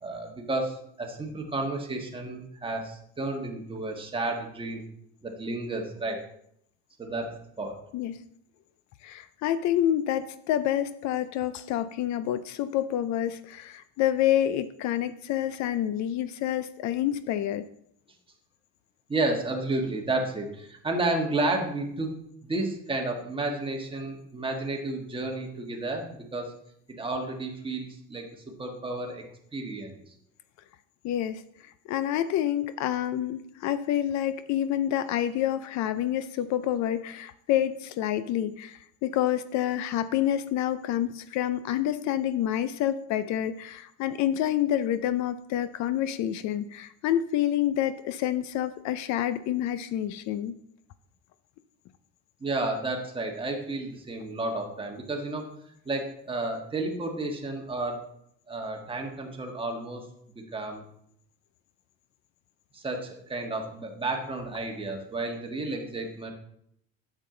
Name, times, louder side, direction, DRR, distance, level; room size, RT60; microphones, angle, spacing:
voice 1, 0.0-4.8 5.2-6.2 7.0-7.7 19.1-22.1 22.4-26.5 26.9-28.3 28.6-29.2 29.5-30.0 52.4-55.4 55.8-58.0 58.5-60.0 60.5-60.8 62.7-66.3, right 2 dB, 15° right, 1 dB, 1.5 m, -31 dB
voice 2, 9.0-17.6 31.0-31.4 31.9-50.5, left 11 dB, 65° left, 14 dB, 0.5 m, -28 dB
8.7 x 7.3 x 3.8 m, 0.72 s
cardioid pair, 125°, 30 cm